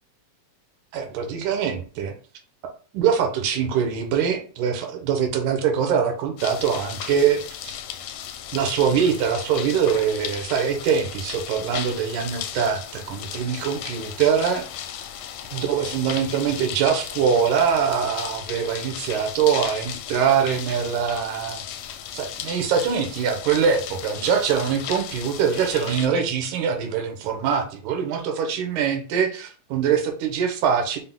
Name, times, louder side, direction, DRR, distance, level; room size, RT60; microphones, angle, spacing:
voice 1, 0.9-2.1 2.9-7.7 8.5-14.7 15.5-21.6 22.1-31.0, right 7 dB, 85° right, 4 dB, 2.2 m, -23 dB
sound 1, 6.4-26.1, left 10 dB, 80° left, 1.5 m, -35 dB
5.5 x 2.1 x 3.6 m, 0.40 s
omnidirectional pair, 3.5 m